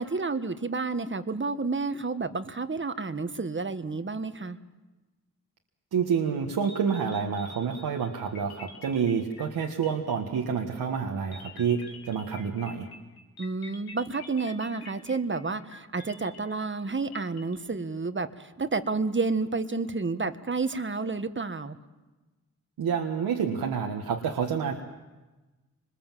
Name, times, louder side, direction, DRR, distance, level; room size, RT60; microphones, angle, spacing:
voice 1, 0.0-4.6 13.4-21.8, right 4 dB, 30° right, 9 dB, 1.5 m, -30 dB
voice 2, 5.9-12.9 22.8-24.8, right 6 dB, 80° right, 1 dB, 1.7 m, -28 dB
sound 1, 6.3-6.4 6.6-10.6 11.3-17.6, left 3 dB, 85° left, 2.3 m, -48 dB
25.0 x 21.0 x 7.6 m, 1.2 s
cardioid pair, 50°, 36 cm